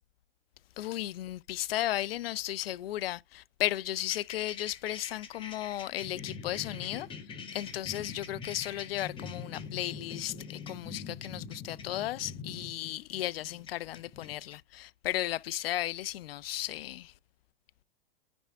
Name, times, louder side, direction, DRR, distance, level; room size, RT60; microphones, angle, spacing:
voice 1, 0.8-7.1 7.5-17.1, left 14 dB, 70° left, 0.5 m, -35 dB
sound 1, 4.0-14.5, left 5 dB, 15° left, 1.4 m, -44 dB
10.0 x 3.5 x 3.5 m
hypercardioid pair, 135°, 30 cm